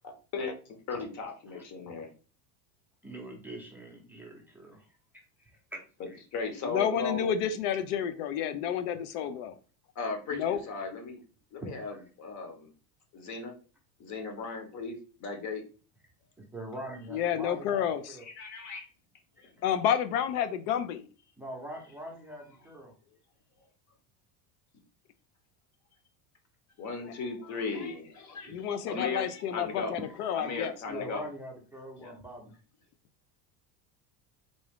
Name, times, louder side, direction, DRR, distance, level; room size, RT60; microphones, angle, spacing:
voice 1, 0.0-2.1 6.0-7.3 9.9-11.2 11.5-12.7 13.1-13.6 14.0-15.6 18.2-18.9 19.4-19.5 26.8-30.0 30.3-31.3 32.0-32.1, left 4 dB, 40° left, 5 dB, 1.0 m, -37 dB
voice 2, 3.0-4.9 5.4-5.8 6.1-6.2 11.6-12.0 16.5-18.2 21.4-22.9 28.4-28.5 30.0-30.1 30.9-32.6, right 1 dB, 5° right, -1 dB, 0.6 m, -43 dB
voice 3, 6.6-9.6 10.3-10.6 17.1-18.2 19.6-21.0 28.5-31.1, left 9 dB, 80° left, 10 dB, 0.6 m, -30 dB
3.8 x 2.4 x 3.5 m, 0.37 s
supercardioid pair, 135°, 45 cm